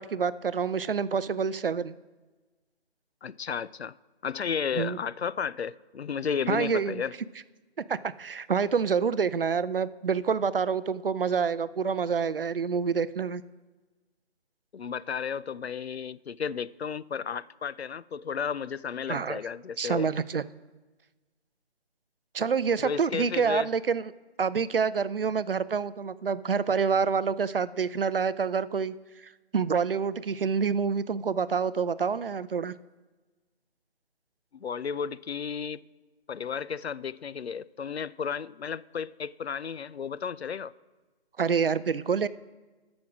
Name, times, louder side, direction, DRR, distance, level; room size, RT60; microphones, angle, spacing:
voice 1, 0.0-1.9 4.8-5.0 6.5-7.0 7.9-13.4 19.1-19.4 19.8-20.4 22.3-24.1 24.4-28.9 29.5-32.7 41.4-42.3, right 6 dB, 55° right, 0.5 m, -27 dB
voice 2, 3.2-3.9 4.2-7.1 14.7-20.1 22.8-23.7 34.5-35.8 36.3-40.7, left 7 dB, 70° left, 0.5 m, -33 dB
14.0 x 6.3 x 6.0 m
figure-of-eight pair, 155°, 33 cm